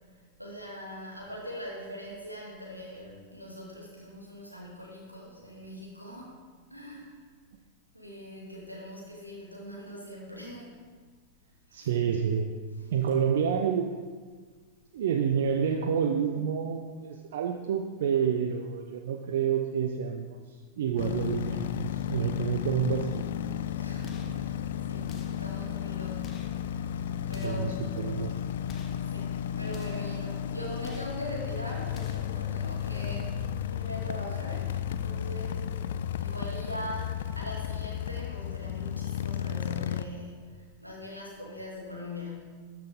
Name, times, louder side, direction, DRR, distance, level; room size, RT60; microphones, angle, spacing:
voice 1, 0.4-6.3 6.7-7.2 7.9-10.8 11.7-11.9 23.7-24.6 24.9-27.9 29.1-33.3 33.7-35.6 36.2-42.5, equal, 90° right, -3 dB, 1.9 m, -42 dB
voice 2, 11.7-12.5 12.9-13.9 14.9-23.3 27.4-28.4, right 7 dB, 60° right, 4 dB, 0.5 m, -29 dB
sound 1, 21.0-40.0, left 10 dB, 60° left, 0.3 m, -33 dB
sound 2, 24.0-24.4 25.1-25.5 26.2-26.6 27.3-27.7 28.6-29.0 29.7-30.1 30.8-31.2 31.9-32.3, left 3 dB, 30° left, 1.0 m, -48 dB
13.0 x 5.9 x 3.6 m, 1.5 s
figure-of-eight pair, 90°, 0 cm